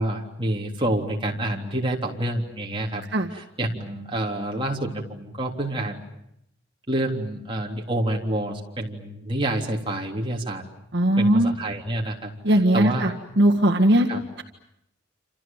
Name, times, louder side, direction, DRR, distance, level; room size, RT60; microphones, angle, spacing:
voice 1, 0.0-3.0 3.3-6.0 6.9-10.6 11.2-13.1 14.1-14.2, right 1 dB, 25° right, 0 dB, 3.5 m, -28 dB
voice 2, 10.9-11.6 12.4-13.1 13.4-14.1, right 1 dB, 55° right, 1 dB, 1.8 m, -18 dB
28.0 x 28.0 x 7.4 m, 0.79 s
head